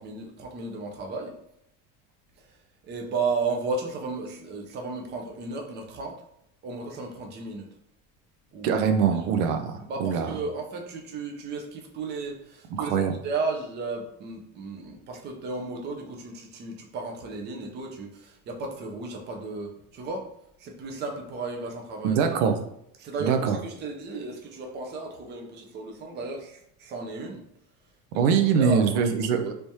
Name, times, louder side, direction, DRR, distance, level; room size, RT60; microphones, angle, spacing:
voice 1, 0.0-1.3 2.5-2.6 2.8-6.2 6.6-7.7 8.5-8.7 9.1-9.3 9.8-20.3 20.6-22.5 23.0-27.4 28.1-28.9 29.2-29.4, right 3 dB, 30° right, 1 dB, 0.5 m, -34 dB
voice 2, 8.6-10.4 12.8-13.1 22.0-22.5 23.2-23.6 28.1-29.5, right 6 dB, 90° right, 6 dB, 0.6 m, -23 dB
3.4 x 3.1 x 2.7 m, 0.75 s
cardioid pair, 155°, 35 cm